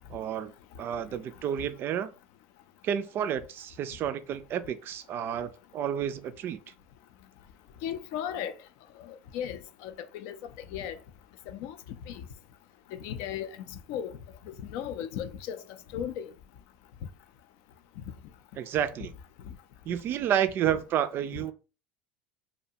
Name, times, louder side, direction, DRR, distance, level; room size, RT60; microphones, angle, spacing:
voice 1, 0.1-0.5 0.8-2.1 2.8-6.6 18.6-19.1 19.9-21.5, right 9 dB, 45° right, 0.3 m, -30 dB
voice 2, 7.8-8.5 9.0-10.4 10.7-11.0 11.5-11.8 12.1-12.2 12.9-14.2 14.5-15.6 15.9-16.3, left 9 dB, 60° left, 0.4 m, -36 dB
2.5 x 2.2 x 2.7 m
hypercardioid pair, 85°, 5 cm